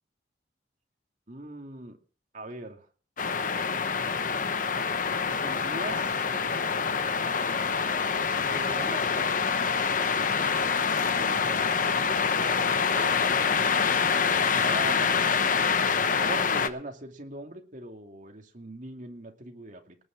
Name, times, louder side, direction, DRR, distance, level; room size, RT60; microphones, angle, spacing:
voice 1, 1.3-2.0 2.3-2.9 5.2-6.2 8.4-9.4 10.8-11.7 12.9-13.2 13.6-15.5 16.2-20.0, right 1 dB, 45° right, 3 dB, 2.5 m, -41 dB
sound 1, 3.2-16.7, left 5 dB, 50° left, 1.0 m, -26 dB
19.0 x 6.3 x 7.4 m, 0.40 s
head